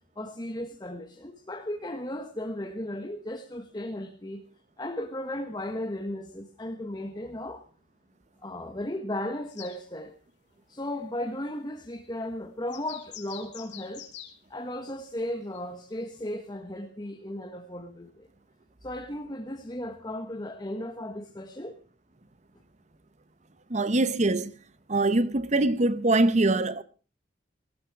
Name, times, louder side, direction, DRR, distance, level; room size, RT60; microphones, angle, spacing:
voice 1, 0.2-4.5 4.8-7.6 8.4-10.1 10.7-14.1 14.5-18.3 18.8-21.8, left 1 dB, 25° left, 1.3 m, -35 dB
sound 1, 9.5-9.8 12.7-14.3 15.5-15.6 16.3-16.4, left 11 dB, 80° left, 2.9 m, -44 dB
voice 2, 23.7-24.5 24.9-26.8, right 2 dB, 40° right, 0.9 m, -23 dB
18.0 x 15.5 x 4.8 m
head